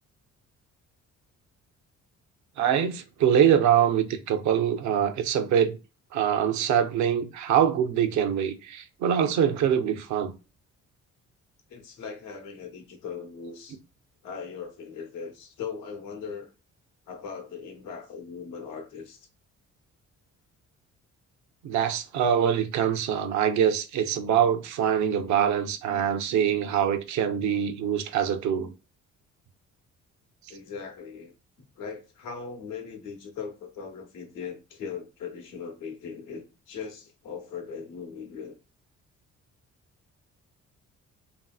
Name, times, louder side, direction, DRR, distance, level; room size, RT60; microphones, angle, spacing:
voice 1, 2.6-5.8 6.1-10.3 21.6-28.7, right 9 dB, 70° right, 0.5 m, -24 dB
voice 2, 11.7-13.8 14.2-16.5 17.1-19.3 30.5-31.3 31.8-38.5, left 6 dB, 90° left, 0.8 m, -39 dB
2.8 x 2.7 x 2.3 m
cardioid pair, 90°, 30 cm